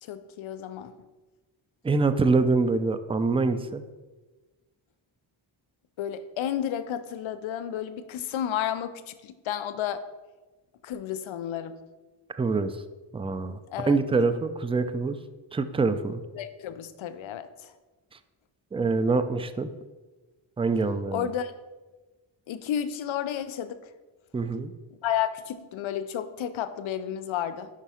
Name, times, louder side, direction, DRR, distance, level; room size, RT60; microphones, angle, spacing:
voice 1, 0.0-1.0 6.0-10.0 10.8-11.8 13.7-13.9 16.3-17.7 21.1-21.5 22.5-23.8 25.0-27.7, left 10 dB, 80° left, 12 dB, 0.6 m, -32 dB
voice 2, 1.8-3.8 12.3-12.8 13.1-15.2 15.5-16.2 18.7-19.7 20.6-21.3 24.3-24.7, right 3 dB, 15° right, 11 dB, 0.3 m, -25 dB
5.0 x 4.7 x 5.6 m, 1.2 s
cardioid pair, 70°, 47 cm